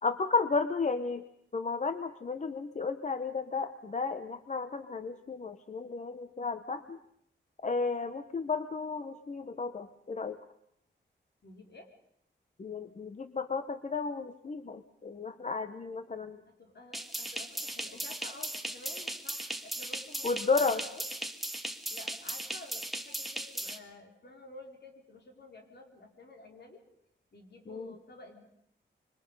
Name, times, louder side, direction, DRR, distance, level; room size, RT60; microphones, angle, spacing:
voice 1, 0.0-1.2 1.5-7.0 7.6-10.4 12.6-16.4 20.2-20.8 27.7-27.9, left 4 dB, 40° left, 10 dB, 0.9 m, -33 dB
voice 2, 11.4-11.9 16.5-21.0 21.9-26.8 27.3-28.5, left 2 dB, 60° left, 2 dB, 4.3 m, -51 dB
sound 1, 16.9-23.8, right 1 dB, ahead, 1.4 m, -38 dB
26.0 x 24.5 x 5.4 m, 0.71 s
wide cardioid pair, 155°, 20 cm